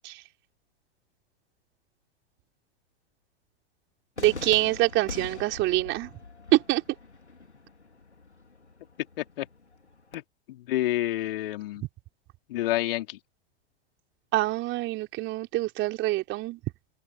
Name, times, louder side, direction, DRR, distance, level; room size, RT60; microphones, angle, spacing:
Cheering / Fireworks, 4.2-10.2, left 4 dB, 85° left, 4.7 m, -43 dB
voice 1, 4.2-6.1 6.5-6.8 14.3-16.6, right 18 dB, 35° right, 4.3 m, -25 dB
voice 2, 10.5-11.8 12.5-13.2, left 15 dB, 55° left, 3.5 m, -29 dB
open air
figure-of-eight pair, 95°, 33 cm